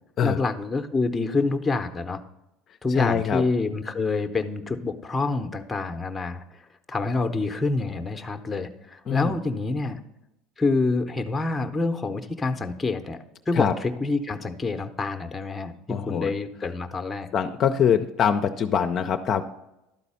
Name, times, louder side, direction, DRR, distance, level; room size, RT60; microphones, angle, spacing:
voice 1, 0.2-2.2 2.8-6.4 6.9-10.0 10.6-13.2 13.5-17.3, left 3 dB, 15° left, 7 dB, 0.8 m, -27 dB
voice 2, 2.9-3.4 9.1-9.4 13.5-13.7 15.9-16.3 17.3-19.4, left 7 dB, 45° left, 5 dB, 0.5 m, -23 dB
12.0 x 4.1 x 5.6 m, 0.89 s
supercardioid pair, 115°, 0 cm